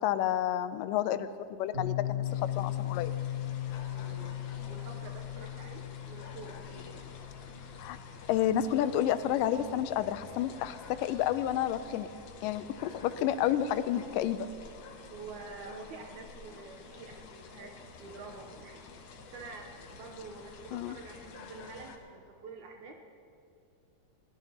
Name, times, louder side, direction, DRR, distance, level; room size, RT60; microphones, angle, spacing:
voice 1, 0.0-3.1 7.8-8.0 8.3-12.1 12.4-14.5 20.7-21.0, left 11 dB, 85° left, 13 dB, 2.2 m, -30 dB
Piano, 1.7-9.2, left 12 dB, 45° right, 3.1 m, -38 dB
sound 1, 2.2-22.0, left 4 dB, 70° left, 2.3 m, -49 dB
voice 2, 3.9-4.4 4.7-7.0 15.1-22.9, right 4 dB, 70° right, 2 dB, 2.2 m, -47 dB
22.0 x 17.5 x 2.9 m, 2.4 s
omnidirectional pair, 3.8 m